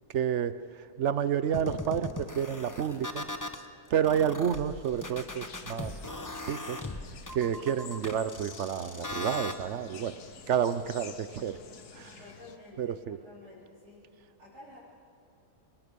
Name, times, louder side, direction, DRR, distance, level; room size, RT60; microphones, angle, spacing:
voice 1, 0.1-3.2 3.9-5.9 6.5-6.8 7.3-10.1 10.5-11.6 11.9-12.2 12.8-13.2, right 8 dB, 60° right, 13 dB, 0.8 m, -30 dB
sound 1, 1.5-3.6 4.0-9.5, left 2 dB, 15° left, 0.7 m, -39 dB
sound 2, 5.2-12.6, left 6 dB, 75° left, 1.7 m, -50 dB
voice 2, 12.2-14.0 14.4-14.8, left 2 dB, 75° right, -10 dB, 4.4 m, -51 dB
28.5 x 19.5 x 5.3 m, 2.6 s
omnidirectional pair, 1.7 m